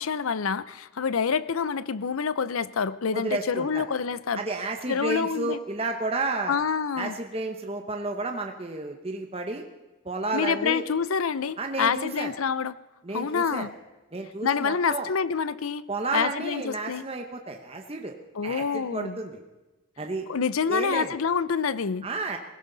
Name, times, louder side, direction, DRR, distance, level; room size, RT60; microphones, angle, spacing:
voice 1, 0.0-4.4 4.9-5.6 6.5-7.2 10.3-12.7 13.1-13.7 14.4-15.8 16.1-17.0 18.3-19.2 20.3-22.1, left 6 dB, 85° left, 17 dB, 0.6 m, -27 dB
voice 2, 3.1-3.8 4.4-6.5 7.0-9.6 10.0-10.8 11.6-12.3 13.0-13.7 14.1-15.1 15.9-18.2 18.4-19.4 20.0-20.3 20.7-21.2 22.0-22.4, right 3 dB, 30° right, 4 dB, 1.0 m, -31 dB
20.0 x 16.5 x 4.0 m, 1.1 s
head